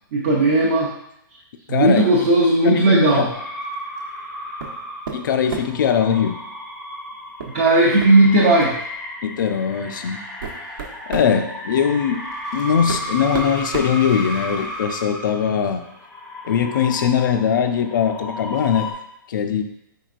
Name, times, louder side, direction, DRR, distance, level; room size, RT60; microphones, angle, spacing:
voice 1, 0.1-0.9 1.7-3.3 7.5-8.7, right 2 dB, 35° right, -5 dB, 0.6 m, -16 dB
voice 2, 1.7-2.0 2.6-3.3 5.1-6.4 9.2-10.2 11.1-12.2 12.5-15.8 16.4-18.9 19.3-19.6, left 7 dB, 65° left, 7 dB, 0.4 m, -21 dB
sound 1, 3.3-18.9, equal, 5° left, 0.6 m, -33 dB
sound 2, 4.6-4.8 5.1-5.9 7.4-7.6 8.0-8.1 8.6-8.8 9.6-9.7 10.2-11.3 12.4-12.5 12.9-14.6, right 6 dB, 75° right, 1.0 m, -32 dB
4.7 x 4.5 x 2.4 m, 0.78 s
hypercardioid pair, 175°, 12 cm